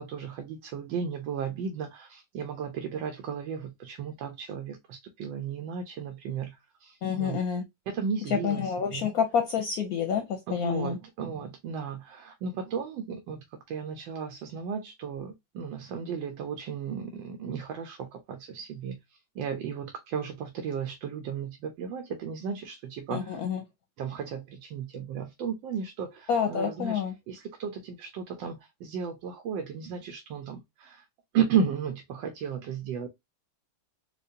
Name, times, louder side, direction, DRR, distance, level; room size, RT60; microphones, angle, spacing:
voice 1, 0.0-7.4 7.9-9.1 10.5-23.4 24.0-31.0 31.3-33.1, right 7 dB, 85° right, 1.4 m, -34 dB
voice 2, 7.0-7.6 8.3-11.0 23.1-23.6 26.3-27.1, left 7 dB, 70° left, 0.9 m, -28 dB
4.6 x 2.4 x 2.6 m
omnidirectional pair, 2.0 m